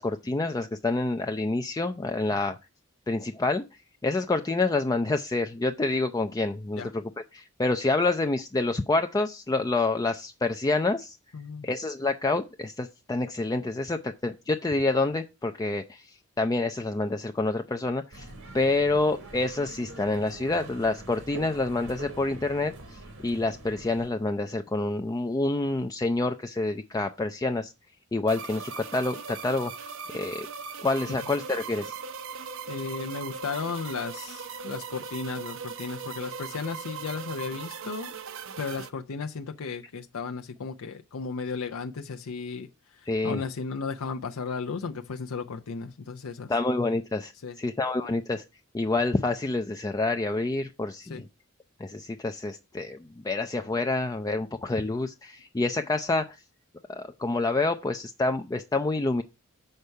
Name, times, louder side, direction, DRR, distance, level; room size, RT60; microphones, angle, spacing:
voice 1, 0.0-2.6 3.1-3.6 4.0-7.0 7.3-11.2 11.6-18.3 18.5-27.7 28.1-29.7 30.1-30.5 30.8-32.0 43.1-43.4 46.5-48.4 48.7-51.3 51.8-56.4 56.9-59.2, left 2 dB, 15° left, 0.4 m, -27 dB
voice 2, 11.3-11.7 32.7-38.1 38.6-42.7 42.9-46.5 47.4-47.6 51.1-51.2, left 5 dB, 85° left, 0.6 m, -35 dB
India small street neighbourhood voices, 18.1-24.1, right 2 dB, 80° right, 1.6 m, -44 dB
sound 1, 28.3-38.9, right 5 dB, 65° right, 0.6 m, -39 dB
6.6 x 4.6 x 5.4 m
head